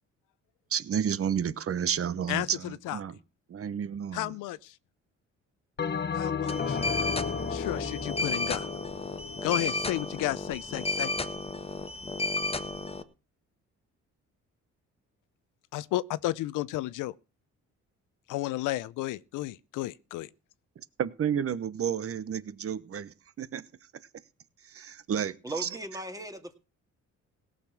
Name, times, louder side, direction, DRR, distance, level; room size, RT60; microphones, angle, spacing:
voice 1, 0.7-3.2 3.5-4.4 21.0-23.7 24.6-25.8, right 8 dB, 50° right, 1.1 m, -31 dB
voice 2, 4.1-4.6 6.1-6.8 7.5-8.7 9.4-11.1 15.7-17.1 18.3-20.3, left 15 dB, 90° left, 0.7 m, -32 dB
Bell, 5.8-10.4, left 6 dB, 35° left, 1.1 m, -34 dB
sound 1, 6.5-13.0, left 2 dB, 20° left, 1.4 m, -33 dB
voice 3, 25.4-26.6, right 2 dB, 10° right, 2.2 m, -38 dB
17.5 x 6.7 x 5.9 m
cardioid pair, 90°, 30 cm